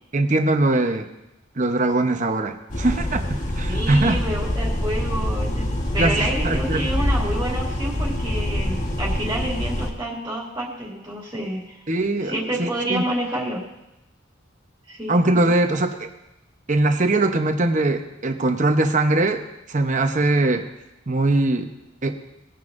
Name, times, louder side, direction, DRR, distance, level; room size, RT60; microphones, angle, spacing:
voice 1, 0.1-1.1 1.6-4.2 6.0-6.9 11.9-12.3 12.6-13.0 15.1-16.1 16.7-20.6 21.1-21.7 22.0-22.2, right 2 dB, 40° right, 6 dB, 0.9 m, -21 dB
sound 1, 2.7-9.9, left 1 dB, 40° left, 1.4 m, -25 dB
voice 2, 3.7-5.7 5.9-11.6 12.2-13.6 14.9-15.2, right 1 dB, 15° right, -4 dB, 2.5 m, -28 dB
19.5 x 9.6 x 2.6 m, 0.91 s
head